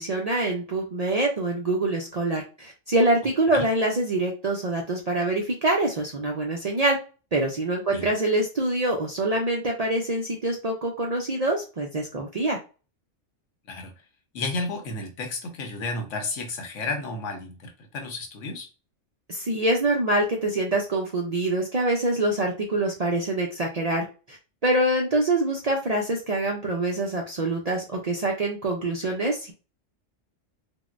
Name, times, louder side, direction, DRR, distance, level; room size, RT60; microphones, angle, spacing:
voice 1, 0.0-7.0 7.3-12.6 19.3-24.4 24.6-29.5, right 2 dB, 55° right, -1 dB, 0.4 m, -25 dB
voice 2, 14.3-18.7, left 3 dB, 85° left, 4 dB, 1.1 m, -32 dB
3.5 x 2.1 x 2.4 m, 0.33 s
omnidirectional pair, 1.3 m